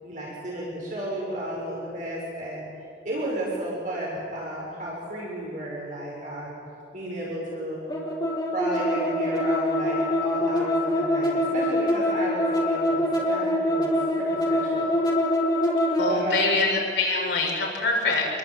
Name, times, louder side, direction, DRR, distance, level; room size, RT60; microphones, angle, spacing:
voice 1, 0.0-2.7 3.0-6.6 6.9-7.8 8.5-14.9 16.1-16.7, right 1 dB, 40° right, -4 dB, 6.6 m, -33 dB
sound 1, 7.9-16.1, left 1 dB, 20° left, 4.1 m, -24 dB
voice 2, 16.0-18.3, left 3 dB, 70° left, -2 dB, 7.0 m, -24 dB
28.0 x 22.5 x 9.4 m, 2.4 s
head